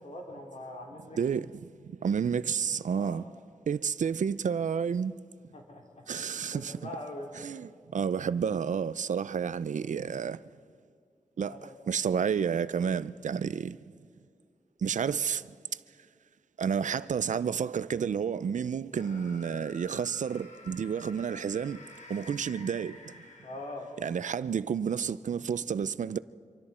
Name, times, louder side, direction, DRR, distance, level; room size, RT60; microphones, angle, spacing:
voice 1, 0.0-1.2 2.9-3.2 5.5-6.0 6.5-7.5 11.5-11.7 23.4-23.9, left 1 dB, 70° left, 3.5 m, -42 dB
voice 2, 1.2-1.5 2.0-3.2 3.7-5.1 6.1-6.7 7.4-10.4 11.4-11.6 11.9-13.8 14.8-15.4 16.6-21.8 22.1-23.0 24.0-26.2, right 7 dB, 85° right, 0.5 m, -30 dB
sound 1, 18.9-24.1, left 2 dB, 85° left, 3.1 m, -50 dB
26.5 x 24.0 x 4.3 m
wide cardioid pair, 90°, 12 cm